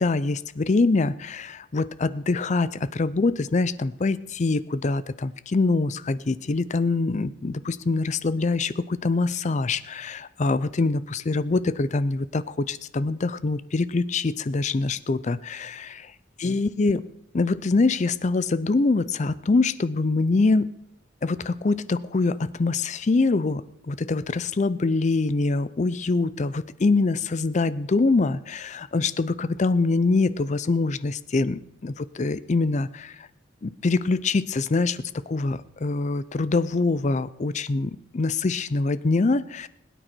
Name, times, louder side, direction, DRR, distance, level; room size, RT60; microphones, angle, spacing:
voice 1, 0.0-15.9 16.4-17.1 17.3-20.8 21.2-33.3 33.6-39.7, left 3 dB, 35° left, 17 dB, 0.5 m, -24 dB
20.5 x 9.2 x 4.5 m, 0.79 s
head